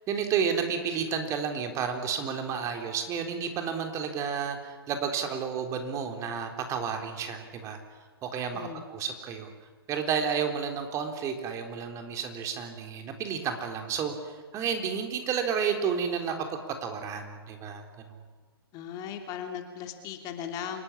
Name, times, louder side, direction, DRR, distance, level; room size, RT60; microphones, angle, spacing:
voice 1, 0.1-7.8 8.2-9.5 9.9-17.8, right 7 dB, 25° right, 5 dB, 3.9 m, -31 dB
voice 2, 18.7-20.8, left 8 dB, 30° left, 5 dB, 3.2 m, -37 dB
28.0 x 19.0 x 9.9 m, 1.3 s
hypercardioid pair, 130°, 13 cm